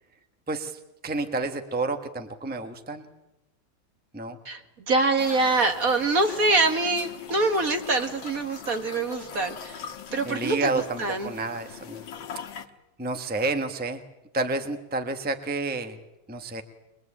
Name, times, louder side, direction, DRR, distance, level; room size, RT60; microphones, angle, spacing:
voice 1, 0.5-3.1 4.1-4.4 10.2-12.1 12.3-12.4 13.0-14.0 14.3-16.0 16.3-16.6, right 3 dB, 5° right, 7 dB, 1.1 m, -30 dB
voice 2, 4.5-9.9 10.1-11.3, right 3 dB, 45° right, 6 dB, 2.0 m, -25 dB
sound 1, 5.2-12.7, left 7 dB, 80° left, 2.0 m, -41 dB
23.0 x 22.0 x 8.7 m, 0.93 s
omnidirectional pair, 2.1 m